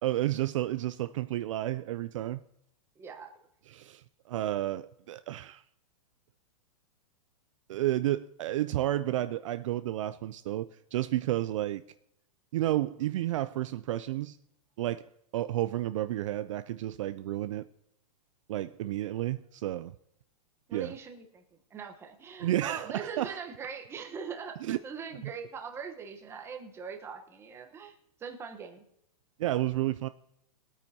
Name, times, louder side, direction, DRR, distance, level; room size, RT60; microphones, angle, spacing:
voice 1, 0.0-2.4 3.7-5.6 7.7-11.8 12.5-14.4 14.8-17.7 18.5-19.9 20.7-20.9 22.4-23.4 24.6-24.8 29.4-30.1, right 14 dB, 55° right, 0.4 m, -31 dB
voice 2, 3.0-3.3 20.7-27.9 28.2-28.8, right 6 dB, 10° right, 1.0 m, -42 dB
22.0 x 8.8 x 2.8 m
hypercardioid pair, 160°, 20 cm